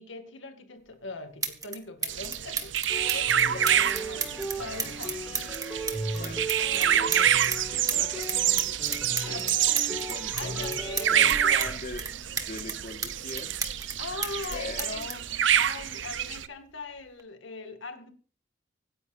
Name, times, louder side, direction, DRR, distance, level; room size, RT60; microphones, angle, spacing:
voice 1, 0.0-5.2 9.2-9.5 10.3-11.6 14.0-15.1 15.5-18.1, left 3 dB, 85° left, 2.1 m, -41 dB
sound 1, 0.9-1.0 1.4-1.8 2.0-7.6 7.9-11.7 12.0-14.0 14.2-16.1 17.0-17.2, right 5 dB, 20° right, 1.6 m, -33 dB
sound 2, 2.1-16.5, right 10 dB, 70° right, 0.7 m, -27 dB
sound 3, 2.9-11.8, right 1 dB, ahead, 6.9 m, -37 dB
voice 2, 6.1-6.4 6.7-9.4 9.9-10.8 11.1-12.1 12.5-13.6 14.5-15.2, left 3 dB, 45° left, 1.7 m, -41 dB
25.0 x 10.0 x 2.6 m
head